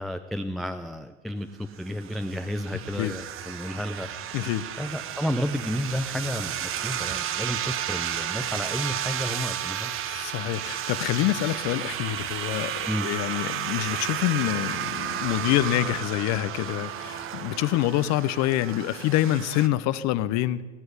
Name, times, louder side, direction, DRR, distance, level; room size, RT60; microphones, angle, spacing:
voice 1, 0.0-4.1 4.8-9.9 12.8-13.1, equal, ahead, 8 dB, 0.4 m, -31 dB
sound 1, 1.8-19.7, right 10 dB, 35° right, 0.9 m, -32 dB
voice 2, 4.3-4.7 10.1-20.6, left 14 dB, 45° left, 16 dB, 0.7 m, -26 dB
18.0 x 7.9 x 8.2 m, 1.3 s
hypercardioid pair, 105°, 38 cm